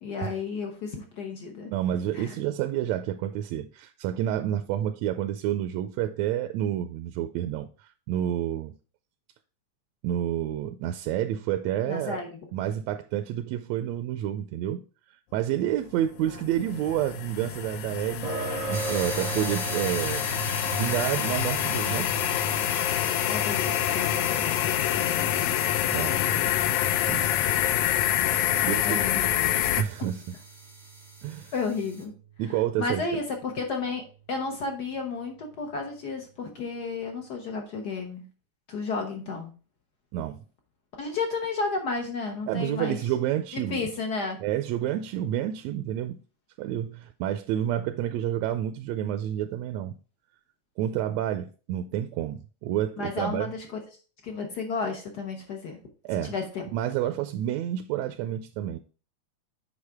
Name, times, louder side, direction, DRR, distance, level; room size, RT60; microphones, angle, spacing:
voice 1, 0.0-1.7 2.1-2.3 11.9-12.5 16.3-16.5 23.3-25.5 26.1-26.5 28.6-29.5 31.5-32.1 32.8-38.2 38.7-39.5 41.0-43.0 43.5-44.4 53.0-53.8 54.2-55.8 56.1-56.6, left 4 dB, 65° left, 1.0 m, -33 dB
voice 2, 1.7-8.7 10.0-12.2 12.5-14.8 15.3-18.3 18.7-20.2 20.7-22.1 25.9-26.2 27.1-27.4 28.7-29.0 29.8-30.2 31.2-31.5 32.4-33.0 40.1-40.4 42.5-43.8 44.4-46.2 46.6-50.0 50.8-53.5 56.0-56.3 56.7-58.8, right 11 dB, 80° right, 1.7 m, -29 dB
sound 1, 16.0-29.8, left 12 dB, 85° left, 2.0 m, -27 dB
sound 2, 18.2-33.1, right 5 dB, 55° right, 0.8 m, -40 dB
sound 3, 18.7-32.0, right 1 dB, ahead, 0.7 m, -41 dB
8.1 x 5.3 x 3.5 m
omnidirectional pair, 3.3 m